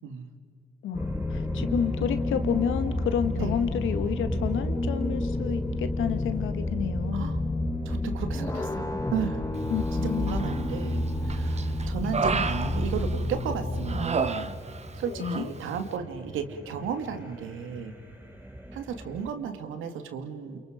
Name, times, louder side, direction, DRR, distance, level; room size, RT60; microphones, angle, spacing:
voice 1, 0.8-7.3 9.7-10.5 15.1-15.5, left 9 dB, 80° left, 9 dB, 1.8 m, -30 dB
sound 1, 0.9-14.1, left 2 dB, 15° left, 1.6 m, -30 dB
sound 2, 0.9-19.3, equal, 10° right, 3.8 m, -40 dB
voice 2, 3.4-3.7 7.1-7.4 7.8-9.4 10.0-14.5 15.0-17.9 18.7-20.6, right 7 dB, 85° right, 7 dB, 2.3 m, -34 dB
Human voice, 10.3-10.9 11.3-13.4 13.9-14.9 15.2-15.5, right 5 dB, 35° right, 1.3 m, -31 dB
29.0 x 29.0 x 5.2 m, 2.5 s
cardioid pair, 90°, 20 cm